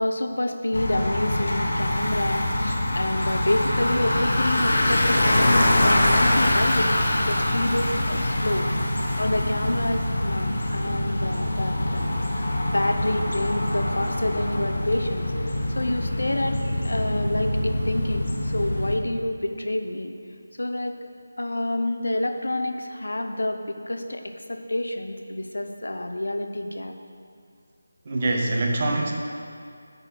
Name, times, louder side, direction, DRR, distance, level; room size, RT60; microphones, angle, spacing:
voice 1, 0.0-6.9 7.2-15.3 15.7-16.6 16.8-20.1 20.6-21.0 21.4-24.2 24.5-26.9, left 1 dB, 85° left, 5 dB, 0.7 m, -28 dB
Bicycle, 0.7-19.0, left 1 dB, 65° left, 1.2 m, -24 dB
voice 2, 28.0-29.1, right 2 dB, 40° right, 1 dB, 0.9 m, -24 dB
9.1 x 4.0 x 5.9 m, 2.3 s
figure-of-eight pair, 165°, 0 cm